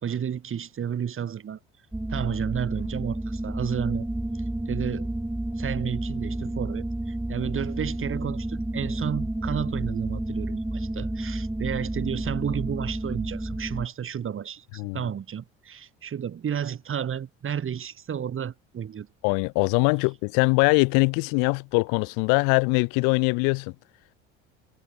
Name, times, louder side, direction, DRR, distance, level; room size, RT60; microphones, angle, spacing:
voice 1, 0.0-1.6 2.1-4.1 4.3-5.1 5.6-19.1, right 8 dB, 40° right, 2.4 m, -32 dB
sound 1, 1.9-13.9, right 1 dB, 5° right, 7.7 m, -31 dB
voice 2, 19.2-23.7, left 34 dB, 70° left, 0.9 m, -22 dB
hypercardioid pair, 70°, 33 cm